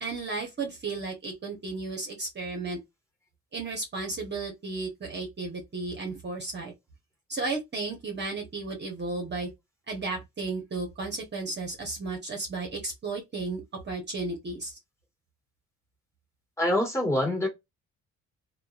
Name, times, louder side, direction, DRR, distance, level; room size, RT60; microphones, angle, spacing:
voice 1, 0.0-2.8 3.5-6.7 7.3-9.5 9.9-14.8, right 3 dB, 35° right, 0.9 m, -34 dB
voice 2, 16.6-17.5, left 1 dB, 10° left, 1.6 m, -25 dB
2.9 x 2.2 x 2.3 m
cardioid pair, 90°, 30 cm